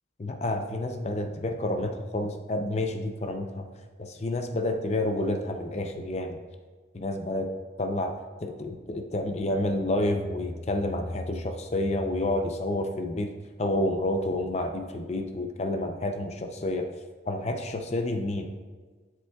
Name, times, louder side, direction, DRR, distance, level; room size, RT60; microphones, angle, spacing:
voice 1, 0.2-3.7 4.0-6.4 6.9-7.5 7.8-8.1 8.4-13.3 13.6-16.9 17.3-18.5, left 1 dB, 35° left, 6 dB, 0.5 m, -29 dB
7.7 x 6.7 x 2.3 m, 1.4 s
head